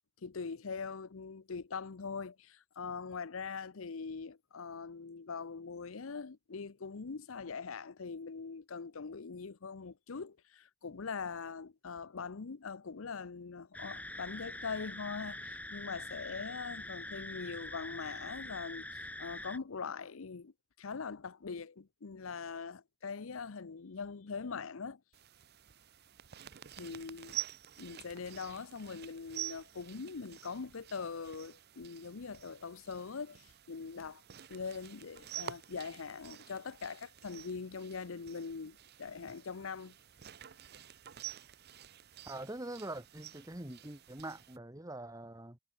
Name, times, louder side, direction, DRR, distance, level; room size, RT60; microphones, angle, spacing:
voice 1, 0.2-20.5 20.8-25.0 26.8-27.4 27.8-34.2 34.5-39.9, left 5 dB, 75° left, 0.7 m, -42 dB
sound 1, 13.7-19.6, left 1 dB, 5° left, 1.5 m, -44 dB
sound 2, 25.1-44.6, right 12 dB, 50° right, 0.7 m, -49 dB
voice 2, 42.2-45.6, right 1 dB, 15° right, 1.5 m, -44 dB
head